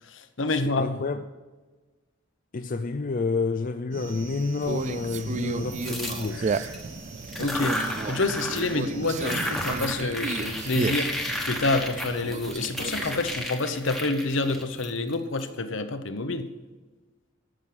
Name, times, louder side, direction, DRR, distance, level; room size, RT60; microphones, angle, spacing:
voice 1, 0.1-1.0 7.4-11.1 11.4-16.5, left 2 dB, 70° left, 1.0 m, -28 dB
voice 2, 0.6-1.3 2.5-6.6, left 3 dB, 45° left, 0.4 m, -29 dB
sound 1, 3.9-9.8, right 3 dB, 75° right, 3.6 m, -41 dB
Conversation, 4.6-13.5, right 4 dB, 35° right, 0.3 m, -34 dB
sound 2, 5.8-6.8 7.2-8.8 9.0-15.4, left 1 dB, ahead, 1.3 m, -33 dB
14.0 x 6.3 x 6.0 m
head